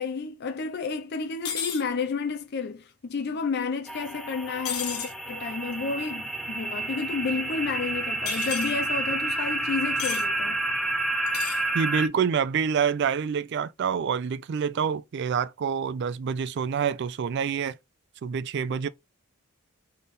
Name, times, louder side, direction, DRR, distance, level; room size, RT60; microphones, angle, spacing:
voice 1, 0.0-10.6, left 4 dB, 50° left, 0.5 m, -31 dB
sound 1, 1.4-1.8 4.6-5.1 8.3-8.7 10.0-10.3 11.3-11.6, left 8 dB, 80° left, 1.0 m, -32 dB
sound 2, 3.9-12.1, right 2 dB, ahead, 0.6 m, -30 dB
voice 2, 11.7-17.8 18.2-18.9, right 6 dB, 50° right, 0.3 m, -27 dB
3.6 x 3.3 x 4.0 m
head